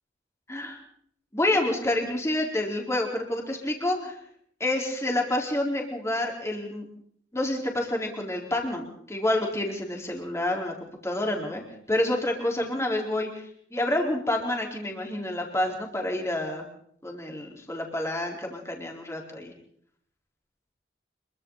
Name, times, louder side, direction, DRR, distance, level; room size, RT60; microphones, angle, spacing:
voice 1, 0.5-0.8 1.3-4.2 4.6-6.9 7.3-11.6 11.9-13.3 13.7-16.7 17.0-19.5, left 1 dB, 15° left, 0 dB, 4.5 m, -28 dB
26.5 x 24.0 x 4.2 m, 0.63 s
head